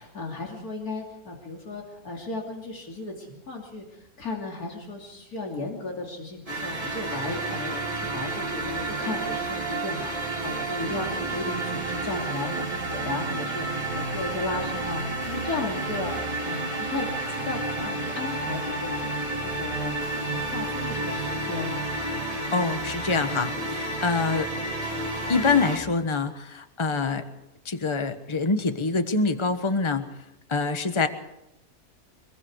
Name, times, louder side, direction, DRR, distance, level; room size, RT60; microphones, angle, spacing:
voice 1, 0.0-19.9 20.3-21.8, left 2 dB, 90° left, 0 dB, 3.4 m, -35 dB
sound 1, 6.5-25.8, right 2 dB, 25° right, 3.5 m, -30 dB
voice 2, 22.5-24.5 25.3-27.2 27.6-30.1 30.5-31.1, left 4 dB, 20° left, 9 dB, 1.2 m, -25 dB
24.5 x 22.0 x 4.8 m, 0.88 s
omnidirectional pair, 1.5 m